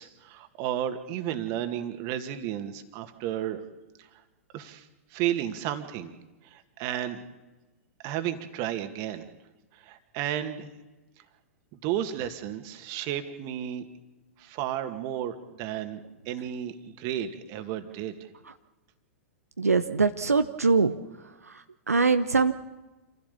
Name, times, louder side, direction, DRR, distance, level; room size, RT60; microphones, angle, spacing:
voice 1, 0.0-3.6 4.0-4.2 4.5-6.1 6.4-7.2 8.0-9.2 9.7-10.8 11.8-13.8 14.4-16.0 16.3-18.3, right 11 dB, 40° right, 8 dB, 2.1 m, -33 dB
voice 2, 19.6-22.5, right 4 dB, 85° right, 9 dB, 0.8 m, -24 dB
27.0 x 15.5 x 7.0 m, 1.1 s
figure-of-eight pair, 105°, 8 cm